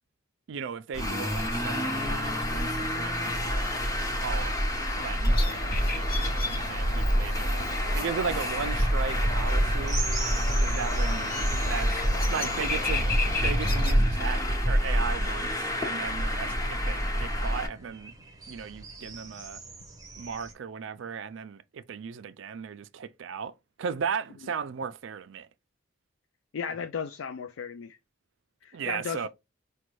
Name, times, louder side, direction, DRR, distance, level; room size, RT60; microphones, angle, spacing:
voice 1, 0.5-3.7 4.2-4.5 5.0-5.7 6.0-10.0 10.6-11.3 11.6-12.0 12.3-13.1 13.4-18.1 18.5-19.6 20.2-23.5 23.8-25.5 28.7-29.3, right 6 dB, 65° right, 0.4 m, -36 dB
Traffic noise roadway noise, 0.9-17.7, equal, 15° left, 0.8 m, -27 dB
sound 1, 5.2-13.9, left 3 dB, 45° left, 0.9 m, -36 dB
sound 2, 9.9-20.5, right 4 dB, 20° right, 0.7 m, -43 dB
voice 2, 26.5-28.0 28.6-29.3, left 6 dB, 75° left, 0.4 m, -35 dB
5.1 x 2.2 x 3.0 m
head